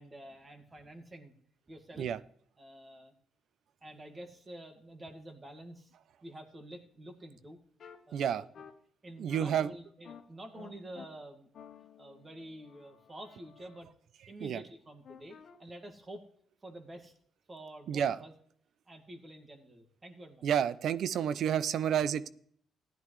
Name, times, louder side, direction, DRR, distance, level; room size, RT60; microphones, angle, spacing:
voice 1, 0.0-1.3 1.7-2.1 2.6-3.1 3.8-5.9 6.2-7.6 8.1-8.5 9.0-11.5 12.0-13.9 14.3-16.2 16.6-17.1 17.5-18.3 18.9-20.4, right 1 dB, 25° right, 5 dB, 2.1 m, -48 dB
sound 1, 7.8-8.0 8.5-8.7 9.3-9.6 10.0-10.2 10.5-11.1 11.5-13.8 15.0-15.6, left 7 dB, 60° left, 1.4 m, -52 dB
voice 2, 8.1-8.4 9.2-9.7 14.4-14.6 17.9-18.2 20.4-22.3, right 9 dB, 70° right, 17 dB, 0.5 m, -30 dB
15.5 x 10.5 x 3.2 m, 0.63 s
cardioid pair, 90°, 0 cm